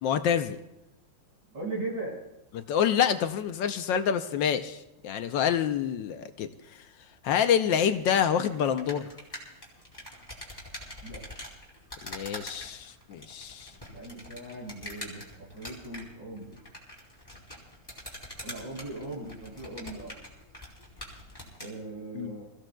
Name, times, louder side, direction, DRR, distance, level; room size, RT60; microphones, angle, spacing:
voice 1, 0.0-0.6 2.5-6.9 7.2-9.1 12.0-13.7 22.1-22.4, left 8 dB, 75° left, 9 dB, 1.3 m, -27 dB
voice 2, 1.5-2.2 11.0-11.2 13.8-16.6 18.4-20.2 21.6-22.5, right 2 dB, 65° right, -3 dB, 6.1 m, -39 dB
sound 1, 7.7-21.7, left 1 dB, 10° left, 3.5 m, -45 dB
26.5 x 15.5 x 2.2 m, 0.95 s
omnidirectional pair, 2.2 m